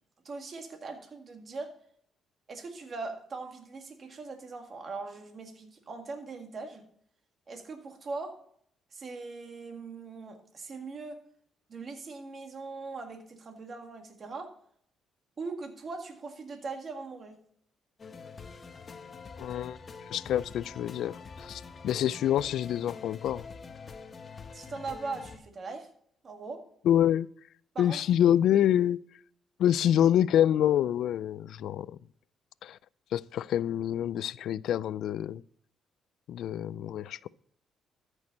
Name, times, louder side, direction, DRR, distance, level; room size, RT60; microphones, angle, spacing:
voice 1, 0.2-1.7 2.5-6.9 7.5-8.4 8.9-11.2 11.7-14.5 15.4-17.4 24.5-25.9 26.2-26.6 27.7-28.0, right 3 dB, 45° right, 4 dB, 1.9 m, -40 dB
sound 1, 18.0-25.4, left 5 dB, 40° left, 1.1 m, -46 dB
voice 2, 19.4-19.8 20.1-23.5 26.9-27.3 27.8-29.0 29.6-31.9 32.6-32.8 33.1-35.4 36.3-37.3, left 11 dB, 75° left, 20 dB, 0.3 m, -26 dB
13.5 x 6.3 x 4.1 m, 0.64 s
cardioid pair, 90°, 0 cm